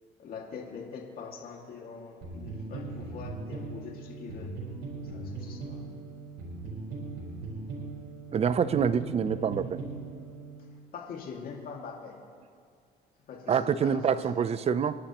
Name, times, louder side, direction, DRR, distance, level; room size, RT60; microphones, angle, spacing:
voice 1, 0.2-4.5 5.0-5.8 10.9-12.2 13.3-14.3, left 5 dB, 60° left, 0 dB, 2.2 m, -43 dB
sound 1, 2.2-10.6, right 3 dB, 90° right, 4.7 m, -39 dB
voice 2, 8.3-9.8 13.5-15.0, right 7 dB, 40° right, 14 dB, 0.6 m, -26 dB
29.0 x 12.0 x 3.0 m, 2.2 s
cardioid pair, 110°, 17 cm